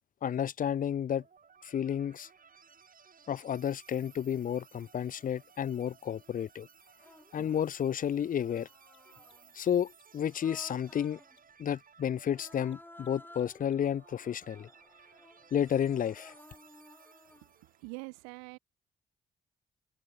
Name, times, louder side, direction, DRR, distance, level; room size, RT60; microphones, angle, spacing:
voice 1, 0.2-1.2 1.6-2.3 3.3-6.7 7.3-8.7 9.5-11.2 11.6-14.7 15.5-16.3, left 9 dB, 45° left, 0.6 m, -31 dB
sound 1, 1.2-18.1, right 6 dB, 45° right, 2.8 m, -60 dB
Mechanisms, 5.3-5.4 8.4-14.0, left 11 dB, 65° left, 5.9 m, -71 dB
Human voice, 5.8-6.0 6.9-7.8 8.4-9.5 10.2-11.4 12.3-17.5, left 1 dB, 10° left, 4.1 m, -56 dB
voice 2, 17.3-18.6, right 40 dB or more, 85° right, 0.9 m, -45 dB
hypercardioid pair, 45°, 20 cm